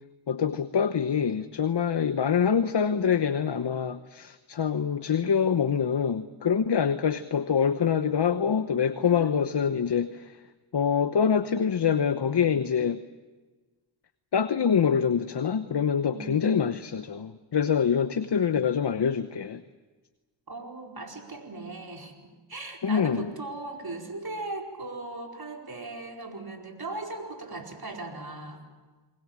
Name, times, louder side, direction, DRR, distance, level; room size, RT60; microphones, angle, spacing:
voice 1, 0.3-10.3 10.7-13.0 14.3-19.6 22.8-23.3, left 7 dB, 55° left, 10 dB, 1.1 m, -25 dB
voice 2, 16.1-16.5 20.5-22.1 22.5-28.6, right 2 dB, 45° right, 1 dB, 4.8 m, -38 dB
29.0 x 20.5 x 7.5 m, 1.3 s
cardioid pair, 50°, 49 cm